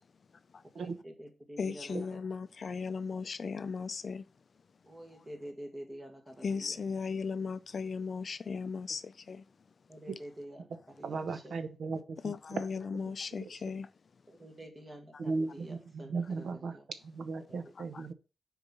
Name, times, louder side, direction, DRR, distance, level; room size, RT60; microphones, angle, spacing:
voice 1, 0.7-2.2 4.8-6.8 9.9-11.6 14.3-16.9 17.5-17.7, equal, 20° right, 1.7 m, -48 dB
voice 2, 1.6-4.2 6.4-9.4 12.2-13.9 17.9-18.0, left 5 dB, 45° left, 0.4 m, -36 dB
voice 3, 11.0-12.6 13.4-13.5 15.2-16.8 17.0-18.1, right 4 dB, 80° right, 0.9 m, -36 dB
6.8 x 4.7 x 5.4 m
wide cardioid pair, 155°, 0 cm